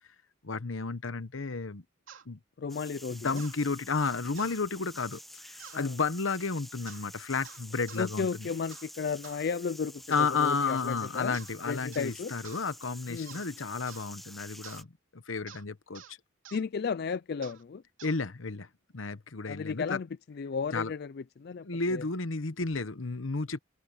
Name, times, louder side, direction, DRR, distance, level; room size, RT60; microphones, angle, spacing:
voice 1, 0.4-1.8 2.3-2.4 3.1-8.5 10.1-14.9 15.1-16.2 18.0-18.7 18.9-20.0 20.7-20.9 21.6-23.6, left 4 dB, 85° left, 1.1 m, -32 dB
sound 1, 2.1-2.3 3.4-3.6 4.3-4.6 5.6-5.9 6.9-7.1 7.4-8.1 8.7-8.9 9.2-9.4 10.1-10.4 11.3-11.6 11.9-12.1 12.4-12.7 13.3-13.5 13.9-14.1 14.6-14.8 15.5-15.6 15.9-16.1 16.4-16.6 17.4-17.6 18.0-18.2, right 8 dB, 90° right, 3.0 m, -50 dB
voice 2, 2.6-3.4 5.7-6.0 8.0-11.4 11.7-12.3 13.1-13.4 16.5-17.8 19.5-22.0, left 5 dB, 55° left, 0.4 m, -34 dB
sound 2, 2.7-14.8, equal, ahead, 0.5 m, -49 dB
head